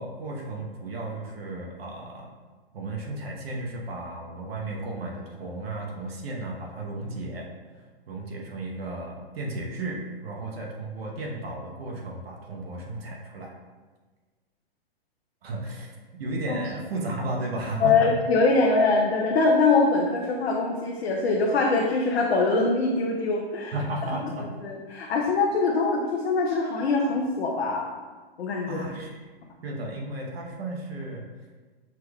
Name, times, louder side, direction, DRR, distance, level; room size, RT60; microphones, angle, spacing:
voice 1, 0.0-2.3 2.7-7.5 8.1-13.5 15.4-18.1 23.7-24.5 28.7-29.2 29.6-31.2, right 2 dB, 75° right, -1 dB, 1.0 m, -34 dB
voice 2, 17.8-23.7 24.6-27.9 28.4-28.8, left 3 dB, 85° left, -1 dB, 0.7 m, -23 dB
5.9 x 2.3 x 3.4 m, 1.3 s
hypercardioid pair, 130°, 30 cm